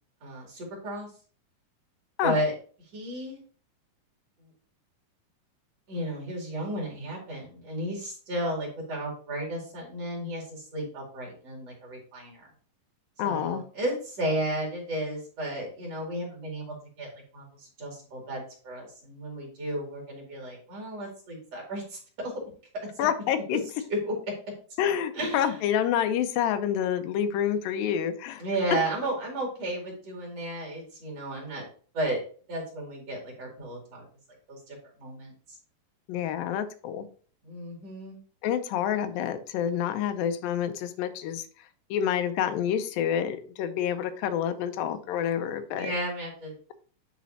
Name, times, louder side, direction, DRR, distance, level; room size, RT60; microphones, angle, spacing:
voice 1, 0.2-1.1 2.2-2.5 2.9-3.4 5.9-12.5 13.2-22.3 24.0-24.1 25.1-25.6 28.4-31.7 31.9-32.2 32.5-34.0 34.5-35.6 37.4-38.2 45.7-46.5, right 1 dB, 50° right, -2 dB, 3.2 m, -33 dB
voice 2, 13.2-13.6 23.0-23.6 24.8-28.4 36.1-37.1 38.4-41.5 41.9-45.9, left 9 dB, 90° left, 9 dB, 2.3 m, -28 dB
10.5 x 4.1 x 2.7 m, 0.42 s
omnidirectional pair, 4.0 m